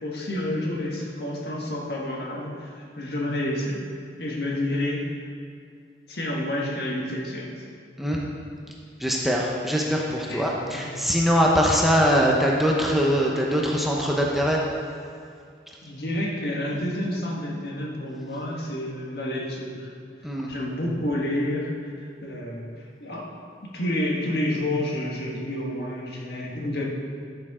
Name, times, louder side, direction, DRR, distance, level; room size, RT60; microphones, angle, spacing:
voice 1, 0.0-3.8 4.2-5.1 6.1-7.5 10.3-11.1 15.8-19.9 20.5-22.7 23.0-23.3 23.6-26.9, left 1 dB, 65° left, -2 dB, 1.6 m, -29 dB
voice 2, 9.0-14.6 20.2-20.5, equal, ahead, -2 dB, 0.8 m, -22 dB
13.0 x 7.0 x 3.7 m, 2.3 s
head